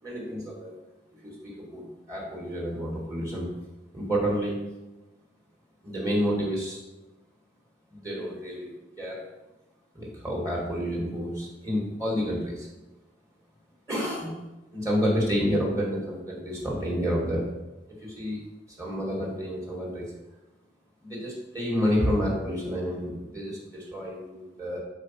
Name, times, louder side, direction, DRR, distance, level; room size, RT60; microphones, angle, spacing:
voice 1, 0.0-0.7 1.2-3.5 3.9-4.6 5.8-6.8 7.9-8.7 9.0-9.2 9.9-12.7 13.9-14.4 14.7-17.4 18.0-18.4 18.8-20.1 21.0-24.8, equal, 20° right, -4 dB, 2.2 m, -29 dB
7.7 x 4.1 x 5.8 m, 1.0 s
head